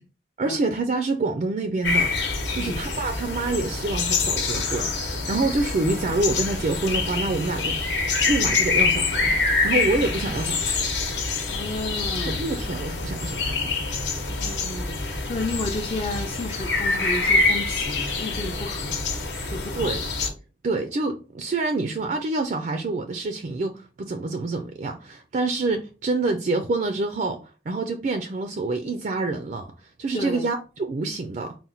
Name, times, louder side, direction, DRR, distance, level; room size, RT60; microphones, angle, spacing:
voice 1, 0.4-2.1 2.5-7.7 8.3-9.4 9.6-10.8 12.3-13.7 19.4-20.0 20.6-31.6, right 3 dB, 45° right, 0.4 m, -27 dB
sound 1, 1.8-20.3, left 3 dB, 70° left, 0.9 m, -26 dB
voice 2, 11.5-12.4 14.3-19.0 19.5-19.9 30.1-30.5, left 2 dB, 30° left, 0.4 m, -32 dB
4.2 x 2.1 x 3.9 m
head